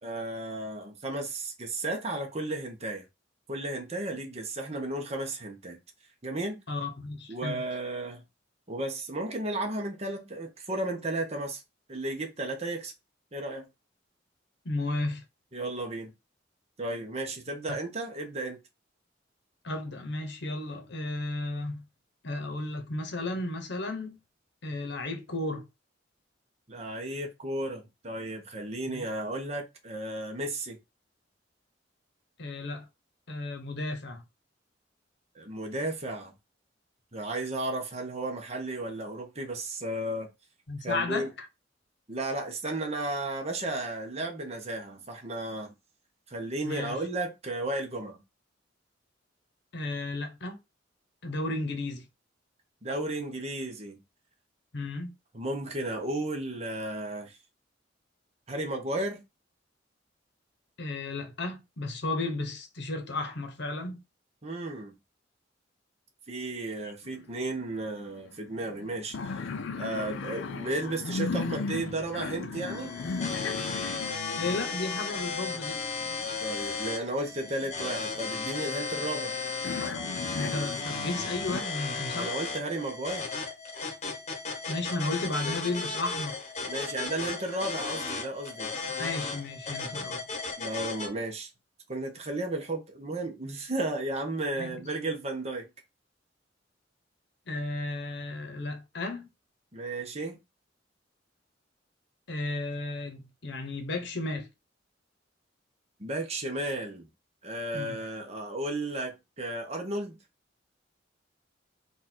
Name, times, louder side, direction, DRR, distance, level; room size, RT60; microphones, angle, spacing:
voice 1, 0.0-3.0 3.5-5.8 6.2-6.6 7.3-8.2 8.7-11.6 11.9-12.9 13.3-13.6 15.5-16.1 16.8-18.6 26.7-30.8 35.3-36.3 37.1-40.3 40.8-41.3 42.1-45.7 46.3-48.2 52.8-54.0 55.3-57.4 58.5-59.2 64.4-64.9 66.3-69.5 69.8-72.9 76.4-79.4 82.1-83.3 86.7-88.7 90.6-91.5 91.9-95.7 99.7-100.4 106.0-107.1 107.4-110.2, right 2 dB, 35° right, 1.1 m, -34 dB
voice 2, 6.7-7.6 14.6-15.2 19.6-21.8 22.2-24.2 24.6-25.7 28.9-29.0 32.4-32.9 33.3-34.2 40.7-41.5 46.6-47.0 49.7-50.6 51.2-52.0 54.7-55.1 60.8-64.0 74.4-75.8 80.3-82.3 84.7-86.4 89.0-90.2 94.6-94.7 97.5-99.3 102.3-104.5 107.7-108.0, left 2 dB, 65° left, 1.0 m, -33 dB
sound 1, 67.0-67.8 68.1-68.2 68.5-76.7 77.3-79.3 79.6-81.6, left 4 dB, 85° left, 0.5 m, -37 dB
sound 2, 72.5-91.1, left 4 dB, 35° left, 1.1 m, -35 dB
4.1 x 2.6 x 4.4 m
head